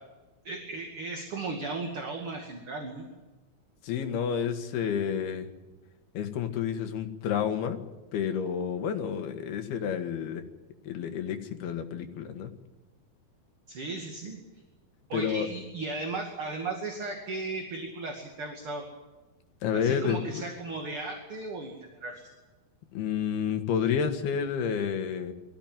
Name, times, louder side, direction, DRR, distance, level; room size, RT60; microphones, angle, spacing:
voice 1, 0.4-3.1 13.7-14.4 15.1-18.8 19.7-22.2, right 3 dB, 40° right, 1 dB, 2.9 m, -36 dB
voice 2, 3.8-5.5 6.2-7.8 8.1-10.4 10.9-12.5 15.1-15.5 19.6-20.4 22.9-25.3, left 7 dB, 90° left, 7 dB, 3.6 m, -30 dB
23.5 x 15.5 x 9.1 m, 1.2 s
omnidirectional pair, 4.4 m